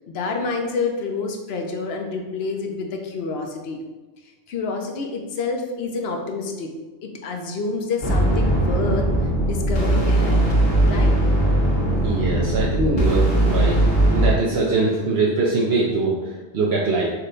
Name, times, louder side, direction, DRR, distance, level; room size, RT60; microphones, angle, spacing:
voice 1, 0.1-3.8 4.5-6.7 7.0-9.1 9.4-10.4 10.8-11.1, left 4 dB, 65° left, 3 dB, 0.8 m, -28 dB
sound 1, 8.0-14.3, right 1 dB, 85° left, 1.6 m, -19 dB
voice 2, 12.0-13.8 14.1-17.1, right 3 dB, 70° right, -3 dB, 0.8 m, -22 dB
5.7 x 2.2 x 3.7 m, 1.2 s
omnidirectional pair, 1.1 m